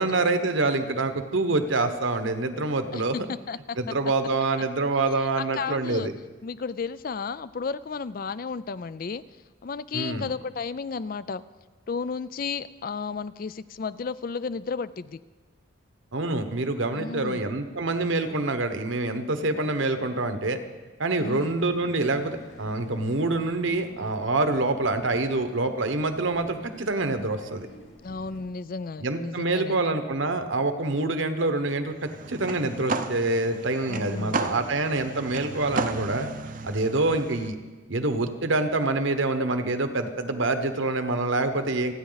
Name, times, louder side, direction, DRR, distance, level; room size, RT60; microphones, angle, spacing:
voice 1, 0.0-3.1 3.8-6.1 9.9-10.3 16.1-20.6 21.0-27.7 29.0-36.3 36.6-37.6 37.9-41.9, right 2 dB, 65° right, 8 dB, 1.2 m, -26 dB
voice 2, 3.3-3.8 5.4-6.1 6.4-9.2 9.6-11.4 11.9-15.2 16.9-17.4 21.2-21.5 28.0-29.8 33.9-34.4, left 5 dB, 45° left, 16 dB, 0.4 m, -33 dB
sound 1, 21.2-28.4, equal, 60° left, 5.0 m, -50 dB
sound 2, 32.0-37.5, right 3 dB, 40° right, 0.7 m, -33 dB
28.5 x 9.7 x 4.0 m, 1.3 s
head